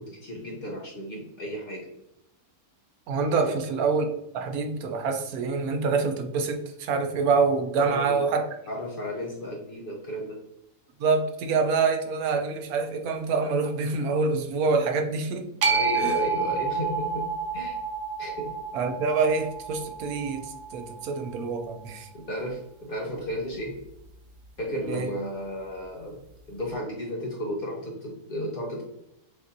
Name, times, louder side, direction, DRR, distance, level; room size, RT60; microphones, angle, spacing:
voice 1, 0.0-1.9 3.4-3.5 7.8-8.2 8.7-10.4 15.6-17.3 17.5-17.8 18.2-18.5 22.1-23.8 24.6-26.2 26.5-28.8, equal, 50° left, -1 dB, 0.7 m, -33 dB
voice 2, 3.1-4.1 4.3-8.4 11.0-15.5 16.0-16.2 18.7-22.1 24.9-25.1, right 4 dB, 85° right, 5 dB, 1.1 m, -26 dB
sound 1, 15.6-21.8, right 5 dB, 60° right, 0.6 m, -30 dB
6.1 x 2.6 x 2.6 m, 0.85 s
omnidirectional pair, 1.5 m